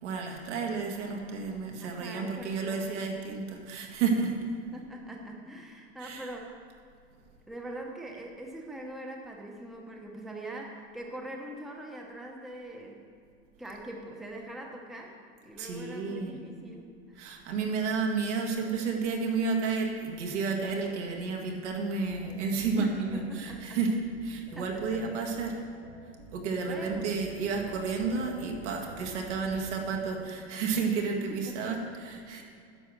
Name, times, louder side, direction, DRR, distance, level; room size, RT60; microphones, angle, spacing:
voice 1, 0.0-4.4 6.0-6.2 15.6-16.3 17.2-23.9 24.2-25.6 26.3-32.4, right 4 dB, 85° right, 1 dB, 1.9 m, -31 dB
voice 2, 1.8-3.2 4.7-6.5 7.5-13.0 13.6-15.2 15.4-17.4 22.8-23.8 24.3-25.0 26.7-27.1 31.5-31.7, right 1 dB, ahead, 0 dB, 0.7 m, -43 dB
sound 1, 22.0-29.9, right 3 dB, 65° right, 1.5 m, -49 dB
9.8 x 6.2 x 6.4 m, 2.3 s
supercardioid pair, 155°, 35 cm